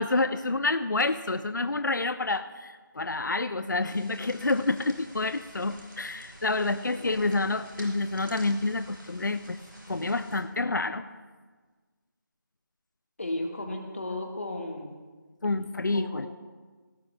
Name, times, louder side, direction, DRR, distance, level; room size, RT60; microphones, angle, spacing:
voice 1, 0.0-9.6 9.9-11.1 15.4-16.3, left 3 dB, 65° left, 11 dB, 0.5 m, -28 dB
sound 1, 3.9-10.4, equal, 75° right, 4.2 m, -49 dB
voice 2, 7.0-7.4 13.2-15.1 15.9-16.3, left 1 dB, 40° left, 3 dB, 1.5 m, -35 dB
17.5 x 14.0 x 2.2 m, 1.4 s
figure-of-eight pair, 165°, 11 cm